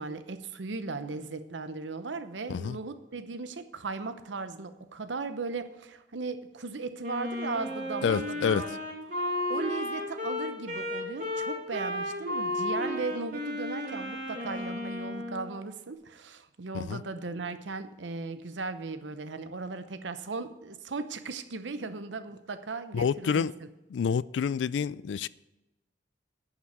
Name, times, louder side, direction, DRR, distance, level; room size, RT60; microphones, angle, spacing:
voice 1, 0.0-8.8 9.5-23.4, right 4 dB, 85° right, 0.8 m, -37 dB
Wind instrument woodwind instrument, 7.0-15.5, left 1 dB, 45° right, 3.2 m, -33 dB
voice 2, 8.0-8.6 16.7-17.0 22.9-23.5 23.9-25.3, left 6 dB, 80° left, 0.3 m, -28 dB
11.0 x 5.9 x 7.9 m
head